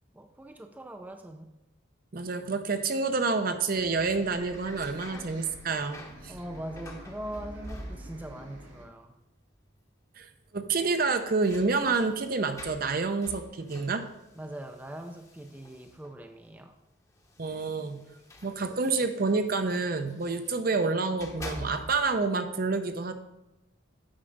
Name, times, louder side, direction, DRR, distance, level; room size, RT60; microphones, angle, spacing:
voice 1, 0.1-1.5 6.3-9.1 14.4-16.8, right 1 dB, 10° right, 5 dB, 0.4 m, -41 dB
voice 2, 2.1-6.3 10.2-14.0 17.4-18.0 18.4-23.1, right 4 dB, 50° right, 8 dB, 0.6 m, -28 dB
Bus, 3.7-8.8, right 1 dB, 85° right, 1.6 m, -48 dB
sound 1, 4.0-8.4 8.7-9.4 9.7-9.8 10.8-16.3 17.1-20.6 21.0-22.2, left 1 dB, 15° left, 0.9 m, -47 dB
8.8 x 4.8 x 5.3 m, 0.95 s
head